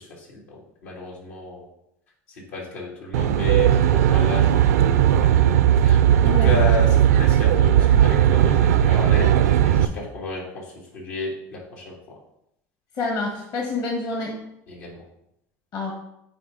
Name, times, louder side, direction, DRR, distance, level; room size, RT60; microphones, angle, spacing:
voice 1, 0.8-1.6 2.5-4.5 4.8-5.3 5.8-9.3 9.6-10.4 10.9-11.6 11.8-11.9 14.7-15.0, left 3 dB, 80° left, -3 dB, 2.9 m, -32 dB
Aircraft, 3.1-9.9, right 10 dB, 85° right, 0.5 m, -17 dB
voice 2, 13.0-14.3 15.7-15.9, left 3 dB, 55° left, 0 dB, 1.6 m, -27 dB
9.1 x 4.2 x 4.0 m, 0.81 s
hypercardioid pair, 90°, 8 cm